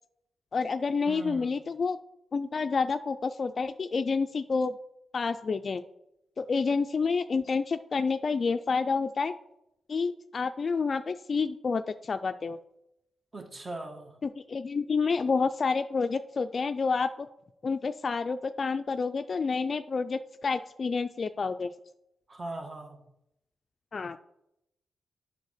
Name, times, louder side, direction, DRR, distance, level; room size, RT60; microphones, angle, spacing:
voice 1, 0.5-2.0 2.3-4.7 5.1-5.8 6.4-9.3 9.9-12.6 14.2-17.3 17.6-21.7 23.9-24.2, left 4 dB, 50° left, 0.3 m, -29 dB
voice 2, 1.1-1.5 13.3-14.1 22.3-23.0, right 2 dB, 35° right, 1.3 m, -40 dB
8.1 x 4.1 x 6.5 m
cardioid pair, 80°, 0 cm